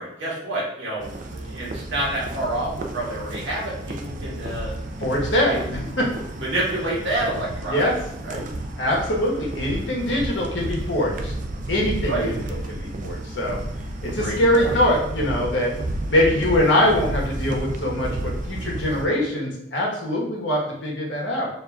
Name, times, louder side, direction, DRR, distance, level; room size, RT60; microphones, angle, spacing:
voice 1, 0.0-4.8 5.5-5.9 6.3-7.9 8.2-8.5 12.1-12.3 14.2-14.8, right 1 dB, 80° right, -6 dB, 1.5 m, -28 dB
sound 1, 1.0-19.1, right 1 dB, 45° right, 0.4 m, -32 dB
voice 2, 5.0-6.1 7.7-8.0 8.8-11.3 11.7-12.3 12.7-13.6 14.0-15.7 16.1-21.5, left 1 dB, 80° left, -2 dB, 1.1 m, -23 dB
6.7 x 2.7 x 2.3 m, 0.77 s
head